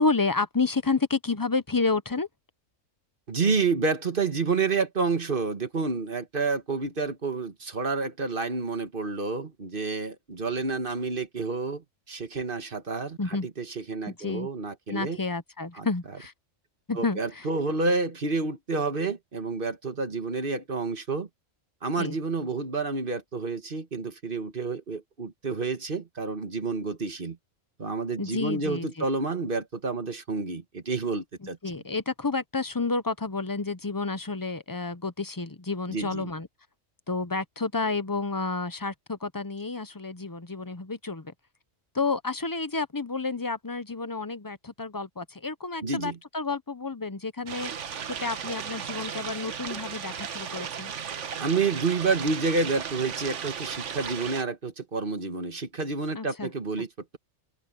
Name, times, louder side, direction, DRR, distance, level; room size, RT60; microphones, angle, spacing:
voice 1, 0.0-2.3 13.2-13.5 14.1-14.5 14.9-16.3 16.9-17.5 22.0-22.1 28.2-28.9 31.4-36.5 37.1-41.3 41.9-47.7 48.1-50.9 56.2-56.5, left 3 dB, 25° left, 0.5 m, -30 dB
voice 2, 3.3-15.2 15.8-15.9 17.0-21.3 21.8-27.4 27.8-31.6 35.9-36.3 45.8-46.2 51.4-57.2, right 4 dB, 45° right, 1.8 m, -29 dB
sound 1, 47.5-54.4, right 7 dB, 65° right, 1.4 m, -35 dB
open air
omnidirectional pair, 1.3 m